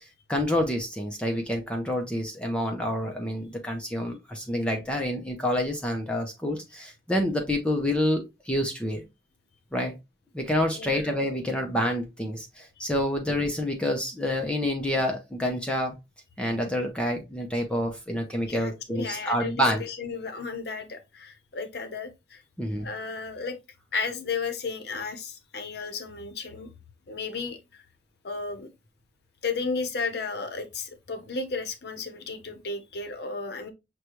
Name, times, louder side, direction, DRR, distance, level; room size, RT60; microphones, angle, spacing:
voice 1, 0.3-9.0 9.7-9.9 10.3-16.0 16.4-19.8 22.6-22.9, left 1 dB, 5° left, 0.6 m, -28 dB
voice 2, 10.7-11.1 18.5-22.4 22.8-23.6 23.9-26.7 27.1-27.8 28.2-28.7 29.4-33.7, left 4 dB, 60° left, 0.8 m, -34 dB
6.4 x 2.2 x 3.0 m
head